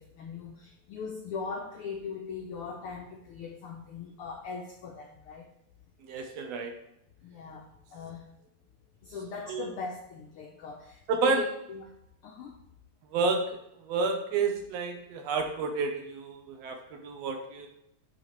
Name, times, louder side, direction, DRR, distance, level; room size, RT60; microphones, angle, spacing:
voice 1, 0.0-5.5 7.2-8.3 9.0-12.0 12.2-12.6, left 5 dB, 90° left, 2 dB, 1.2 m, -40 dB
voice 2, 6.0-6.7 9.5-9.6 11.1-11.4 13.1-13.4 13.8-17.7, right 4 dB, 70° right, 4 dB, 1.8 m, -30 dB
11.0 x 4.1 x 3.1 m, 0.79 s
omnidirectional pair, 3.3 m